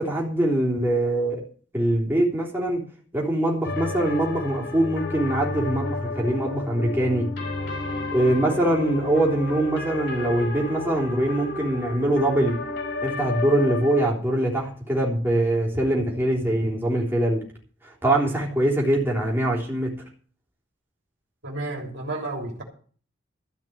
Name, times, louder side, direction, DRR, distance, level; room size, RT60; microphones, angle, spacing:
voice 1, 0.0-1.4 1.7-2.8 3.1-7.3 8.1-12.6 13.0-17.4 18.0-19.9, right 1 dB, 10° right, 3.5 m, -23 dB
sound 1, 3.6-14.1, left 2 dB, 60° left, 3.6 m, -32 dB
voice 2, 21.4-22.6, right 2 dB, 70° right, 3.1 m, -31 dB
14.0 x 5.8 x 9.0 m
head